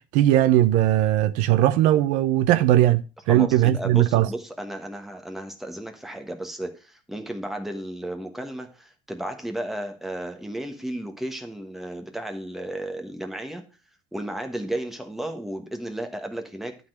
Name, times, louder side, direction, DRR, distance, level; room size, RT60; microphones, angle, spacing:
voice 1, 0.0-4.3, right 13 dB, 60° right, 0.6 m, -19 dB
voice 2, 3.3-13.6 14.1-16.7, right 1 dB, ahead, 1.2 m, -33 dB
11.5 x 4.0 x 6.4 m
cardioid pair, 165°, 15 cm